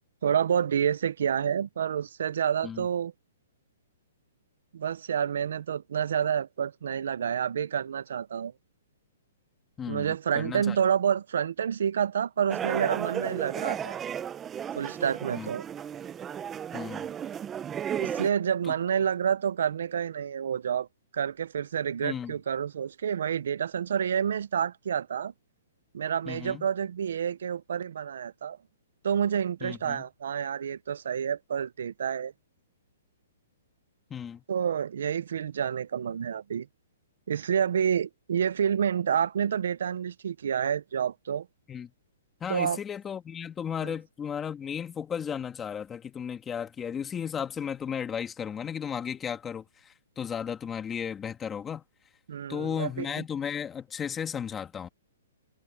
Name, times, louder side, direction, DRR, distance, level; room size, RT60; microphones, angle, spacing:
voice 1, 0.2-3.1 4.7-8.5 9.9-14.0 14.8-15.7 18.0-20.9 21.1-25.3 25.9-28.6 29.0-32.3 34.5-36.7 37.3-41.5 42.5-42.8 43.8-43.9 52.3-53.1, right 8 dB, 70° right, 0.8 m, -28 dB
voice 2, 9.8-10.8 15.3-15.5 16.7-17.1 18.6-18.7 22.0-22.4 26.3-26.7 29.6-30.1 34.1-34.4 41.7-41.9 42.4-51.8 52.5-54.9, left 8 dB, 15° left, 2.3 m, -35 dB
sound 1, 12.5-18.3, right 9 dB, 15° right, 0.8 m, -34 dB
hypercardioid pair, 160°, 0 cm